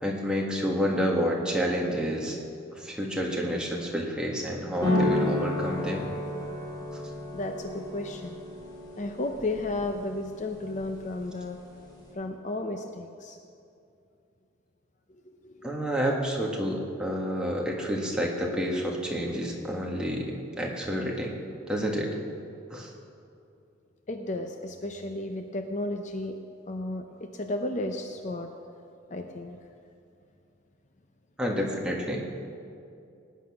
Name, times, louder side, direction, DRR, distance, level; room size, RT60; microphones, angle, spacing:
voice 1, 0.0-2.4 2.7-6.1 6.9-7.0 15.6-21.4 21.7-22.2 22.7-22.9 31.4-32.3, equal, 5° right, -2 dB, 1.8 m, -29 dB
sound 1, 4.8-12.1, left 1 dB, 20° left, 3.6 m, -32 dB
voice 2, 7.3-8.3 9.0-11.6 12.1-13.4 15.1-15.7 24.1-26.4 26.7-28.5 29.1-29.6, left 2 dB, 35° left, 5 dB, 0.7 m, -33 dB
19.0 x 9.3 x 6.2 m, 2.6 s
head